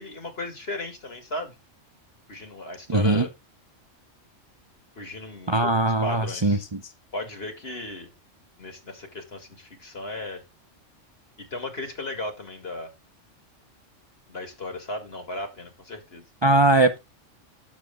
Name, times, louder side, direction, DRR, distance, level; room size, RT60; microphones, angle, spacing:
voice 1, 0.0-1.6 2.3-3.3 5.0-5.7 6.0-6.6 7.1-8.1 8.6-10.4 11.4-12.9 14.3-16.2, left 2 dB, 55° left, 2.6 m, -35 dB
voice 2, 2.9-3.3 5.5-6.8 16.4-17.0, right 2 dB, 30° right, 0.6 m, -20 dB
9.6 x 7.1 x 3.7 m
omnidirectional pair, 1.3 m